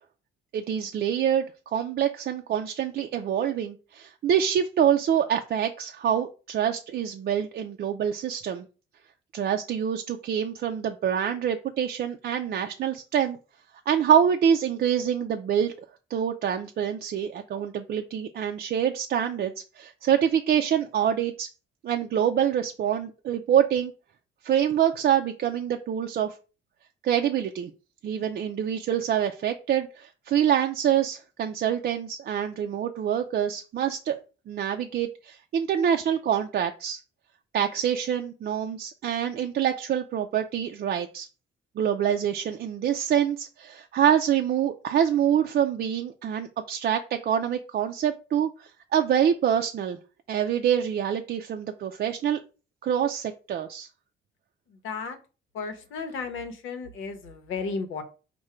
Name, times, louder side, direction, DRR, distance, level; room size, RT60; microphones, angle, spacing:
voice 1, 0.5-8.7 9.3-13.4 13.9-15.7 16.1-21.5 21.8-23.9 24.4-26.4 27.0-27.7 28.0-34.2 34.5-37.0 37.5-41.3 41.8-50.0 50.3-52.4 52.8-53.9, right 9 dB, 50° right, 0.4 m, -26 dB
voice 2, 54.8-55.2 55.5-58.0, left 4 dB, 80° left, 0.9 m, -34 dB
4.7 x 2.2 x 4.3 m
cardioid pair, 90°, 20 cm